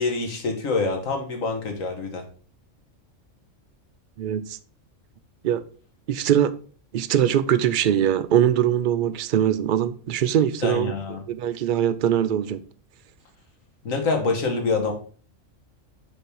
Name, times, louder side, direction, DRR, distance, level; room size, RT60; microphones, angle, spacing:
voice 1, 0.0-2.2 10.6-11.2 13.8-14.9, left 3 dB, 90° left, 1.8 m, -26 dB
voice 2, 4.2-4.6 5.4-5.6 6.1-6.5 6.9-10.9 11.3-12.6, right 10 dB, 65° right, 0.5 m, -22 dB
6.8 x 4.1 x 4.5 m
omnidirectional pair, 1.3 m